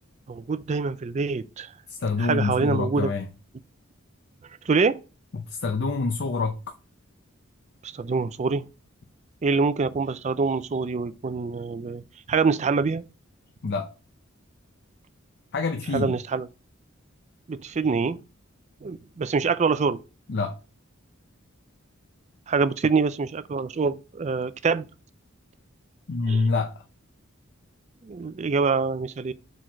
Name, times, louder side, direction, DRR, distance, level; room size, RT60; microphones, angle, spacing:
voice 1, 0.3-1.7 2.2-3.1 4.7-5.0 7.8-8.7 9.4-13.0 15.9-16.5 17.5-18.2 18.8-20.0 22.5-24.9 26.3-26.4 28.0-29.3, right 4 dB, 35° right, 0.4 m, -25 dB
voice 2, 1.9-3.3 5.3-6.8 13.6-13.9 15.5-16.1 20.3-20.6 26.1-26.8, left 4 dB, 55° left, 0.6 m, -26 dB
4.6 x 4.3 x 5.7 m
head